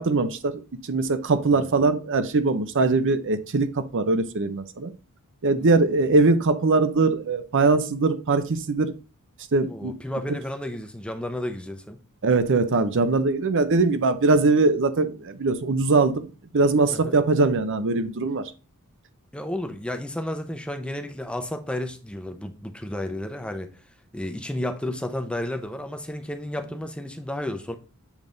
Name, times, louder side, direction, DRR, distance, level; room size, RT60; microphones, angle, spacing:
voice 1, 0.0-4.9 5.4-8.9 9.5-10.0 12.2-18.5, right 3 dB, 60° right, 0.7 m, -22 dB
voice 2, 1.4-1.9 5.6-5.9 9.7-12.0 16.9-17.2 19.3-23.7 24.1-27.7, left 1 dB, 5° left, 0.6 m, -32 dB
7.3 x 3.6 x 3.8 m
head